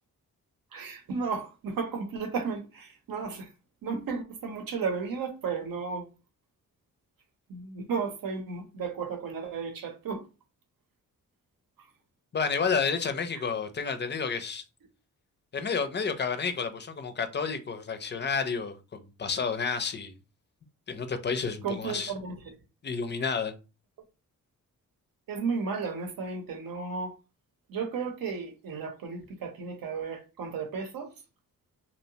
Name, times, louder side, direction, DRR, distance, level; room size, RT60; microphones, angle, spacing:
voice 1, 0.7-3.5 3.8-6.1 7.5-10.2 21.6-22.5 25.3-27.2 27.7-31.1, right 5 dB, 80° right, 0.8 m, -34 dB
voice 2, 12.3-14.6 15.5-20.1 20.9-22.1 22.8-23.5, left 5 dB, 35° left, 0.4 m, -30 dB
2.8 x 2.1 x 2.7 m
cardioid pair, 90°, 34 cm